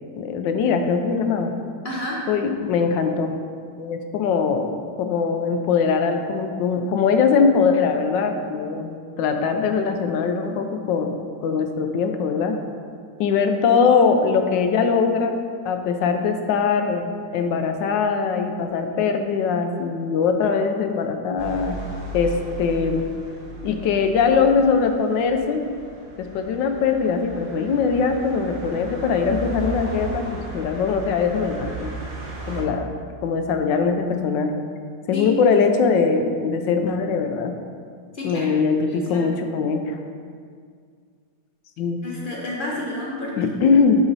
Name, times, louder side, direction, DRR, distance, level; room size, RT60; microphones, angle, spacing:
voice 1, 0.2-1.5 2.3-3.3 3.8-4.7 5.0-11.2 11.4-12.6 13.2-15.3 15.6-21.8 22.1-23.0 23.6-25.6 26.2-31.9 32.5-32.9 33.2-34.6 35.1-37.5 38.2-40.0 41.8-42.0 43.3-44.1, left 5 dB, 80° left, 6 dB, 1.3 m, -21 dB
voice 2, 1.8-2.2 35.1-35.3 38.1-38.5 38.8-39.3 42.0-43.3 43.6-43.7, left 1 dB, 50° left, -4 dB, 0.6 m, -30 dB
sound 1, 21.4-32.6, right 2 dB, 35° right, 1.6 m, -35 dB
6.9 x 5.1 x 4.0 m, 2.1 s
omnidirectional pair, 2.0 m